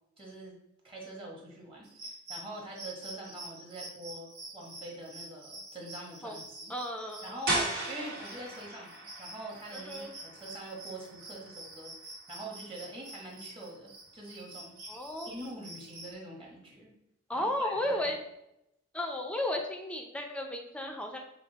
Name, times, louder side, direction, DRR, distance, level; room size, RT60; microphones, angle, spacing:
voice 1, 0.2-0.6 0.8-4.3 4.5-6.7 7.2-11.9 12.3-14.8 15.2-16.9 17.3-18.1, right 2 dB, 25° right, -2 dB, 1.2 m, -44 dB
sound 1, 1.8-16.1, right 2 dB, 75° right, 1.5 m, -47 dB
voice 2, 6.7-7.4 9.7-10.1 14.9-15.3 17.3-18.2 18.9-21.2, left 1 dB, 5° left, 3 dB, 0.5 m, -34 dB
sound 2, 7.5-13.1, right 2 dB, 50° right, 1.6 m, -38 dB
5.8 x 2.1 x 4.0 m, 0.83 s
head